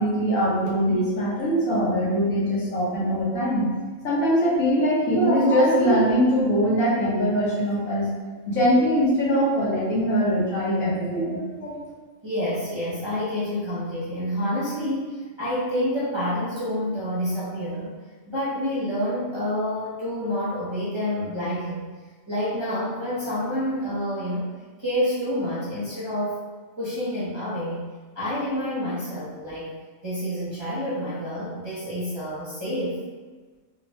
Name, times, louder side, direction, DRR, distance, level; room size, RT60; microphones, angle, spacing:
voice 1, 0.0-3.7 4.0-8.1 8.5-11.8, equal, 80° left, -8 dB, 1.5 m, -22 dB
voice 2, 12.2-17.9 18.3-21.8 22.3-24.4 24.8-26.4 26.8-27.8 28.1-29.7 30.0-33.0, equal, 25° right, -11 dB, 0.6 m, -28 dB
3.6 x 2.1 x 2.9 m, 1.4 s
omnidirectional pair, 1.4 m